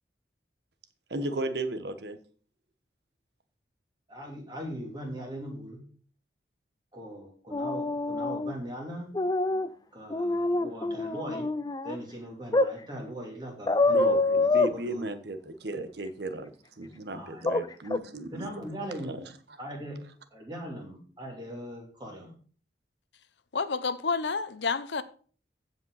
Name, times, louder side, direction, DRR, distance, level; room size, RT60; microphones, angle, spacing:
voice 1, 1.1-2.2 13.9-16.5 16.8-18.5 19.0-19.2, right 2 dB, 70° right, 1.1 m, -35 dB
voice 2, 4.1-5.8 6.9-9.1 9.9-11.5 11.8-14.2 14.5-15.0 17.1-17.6 18.3-19.2 19.6-20.0 20.3-22.3, equal, 25° right, 3.2 m, -40 dB
sound 1, 7.5-8.5 9.1-9.7 10.1-12.0 12.5-12.7 13.7-14.7 17.4-17.6 17.9-18.0, left 2 dB, 20° left, 0.4 m, -26 dB
voice 3, 23.5-25.0, left 4 dB, 80° left, 0.8 m, -29 dB
15.5 x 5.2 x 4.2 m
head